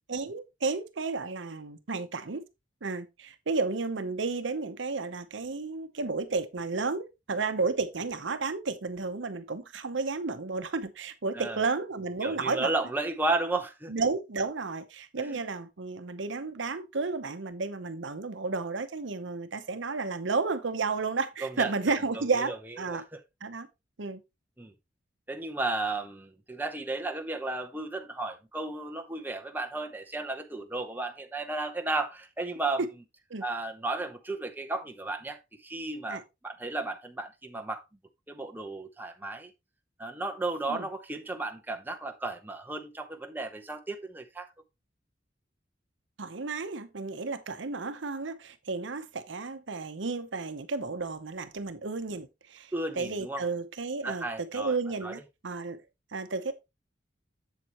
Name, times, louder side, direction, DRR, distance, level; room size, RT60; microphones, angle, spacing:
voice 1, 0.1-2.4 2.8-12.7 13.9-23.0 23.4-23.7 24.0-24.2 33.3-33.4 36.1-36.2 40.7-40.8 46.2-55.8 56.1-56.5, right 4 dB, 70° right, 0.8 m, -32 dB
voice 2, 11.3-11.6 12.2-13.9 15.2-15.4 21.4-22.6 22.8-23.2 24.6-24.7 25.3-32.8 33.4-37.8 38.3-39.5 40.0-44.5 52.7-53.5 54.0-54.7 55.0-55.2, right 2 dB, 10° right, 0.8 m, -34 dB
7.6 x 7.4 x 3.0 m
head